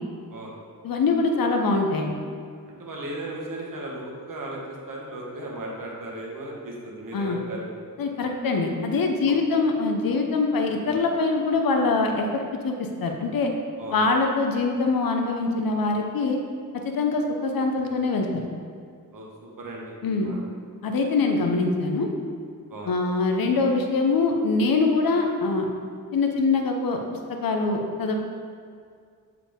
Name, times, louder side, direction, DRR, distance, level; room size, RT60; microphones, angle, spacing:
voice 1, 0.8-2.1 7.1-7.4 8.0-12.7 13.0-13.5 13.9-16.4 16.8-18.4 20.0-20.3 20.8-22.1 22.9-25.7 26.1-27.0 27.4-28.2, left 3 dB, 75° left, 3 dB, 0.8 m, -23 dB
voice 2, 2.8-7.7 9.3-9.4 13.8-14.0 19.1-19.3 19.6-19.9 20.2-20.4 22.7-22.9, right 1 dB, 65° right, -2 dB, 1.4 m, -36 dB
7.0 x 4.8 x 3.6 m, 2.2 s
wide cardioid pair, 95°, 35 cm